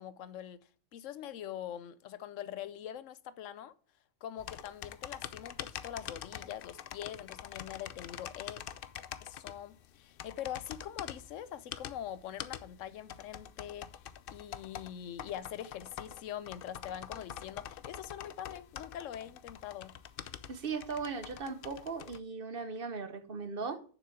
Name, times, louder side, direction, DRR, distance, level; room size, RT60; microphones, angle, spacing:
voice 1, 0.0-3.7 4.2-8.6 9.2-13.9 14.3-19.9, left 10 dB, 85° left, 1.0 m, -43 dB
sound 1, 4.4-22.2, left 9 dB, 60° left, 0.6 m, -46 dB
voice 2, 20.5-23.8, right 4 dB, 50° right, 1.1 m, -38 dB
7.1 x 6.2 x 7.0 m
omnidirectional pair, 1.3 m